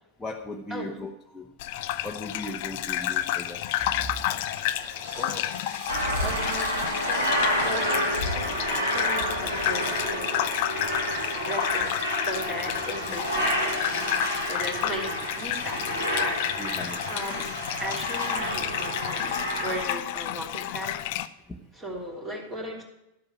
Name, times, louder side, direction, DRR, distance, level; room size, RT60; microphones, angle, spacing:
voice 1, 0.2-1.5 2.0-3.6 16.6-17.0 21.5-21.6, left 1 dB, 10° left, -2 dB, 1.1 m, -37 dB
voice 2, 0.7-1.0 4.8-5.5 6.2-10.5 11.3-13.8 14.5-16.4 16.7-17.5 17.8-19.3 19.6-21.0 21.7-22.8, equal, 20° right, 0 dB, 3.2 m, -37 dB
Gurgling / Bathtub (filling or washing), 1.6-21.3, left 13 dB, 50° left, 0.5 m, -31 dB
sound 1, 4.0-18.3, right 1 dB, 70° right, 3.7 m, -46 dB
Aircraft, 5.9-19.8, equal, 85° right, 4.6 m, -29 dB
12.0 x 7.8 x 6.0 m, 0.88 s
figure-of-eight pair, 90°, 0 cm